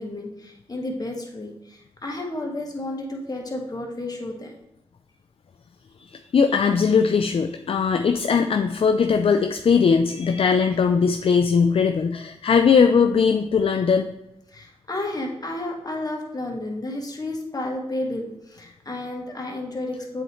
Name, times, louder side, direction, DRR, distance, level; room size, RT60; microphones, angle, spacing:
voice 1, 0.0-4.5 14.5-20.2, left 1 dB, 35° left, 0 dB, 1.7 m, -32 dB
voice 2, 6.1-14.1, left 6 dB, 55° left, 7 dB, 0.4 m, -20 dB
7.8 x 4.3 x 3.1 m, 0.90 s
cardioid pair, 40°, 11 cm